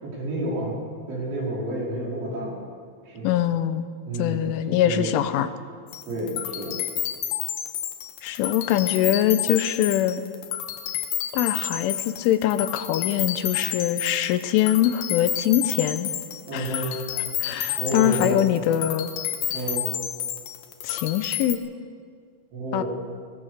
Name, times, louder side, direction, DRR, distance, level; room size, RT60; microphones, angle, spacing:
voice 1, 0.0-0.8 1.1-2.6 3.0-3.3 4.1-5.1 6.1-6.8 16.5-17.0 17.8-18.4 19.5-19.9 22.5-22.9, right 1 dB, 75° right, -5 dB, 7.7 m, -30 dB
voice 2, 3.2-3.9 4.2-5.5 8.2-10.2 11.3-16.1 16.5-16.8 17.4-19.1 20.8-21.6 22.7-22.8, left 11 dB, 85° left, 10 dB, 3.4 m, -23 dB
sound 1, 5.9-21.5, left 10 dB, 65° left, 2.6 m, -30 dB
22.5 x 19.5 x 6.7 m, 2.1 s
omnidirectional pair, 5.5 m